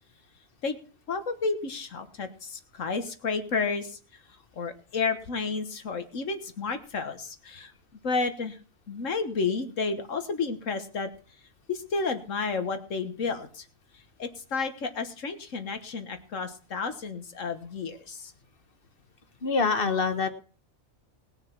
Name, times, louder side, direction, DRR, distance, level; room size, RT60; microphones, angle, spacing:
voice 1, 1.1-4.2 4.5-7.7 8.0-8.6 8.9-11.1 11.7-13.7 14.2-18.3, left 4 dB, 70° left, 9 dB, 1.7 m, -31 dB
voice 2, 19.4-20.3, left 4 dB, 45° left, 10 dB, 1.3 m, -25 dB
19.5 x 6.6 x 5.9 m, 0.39 s
omnidirectional pair, 1.4 m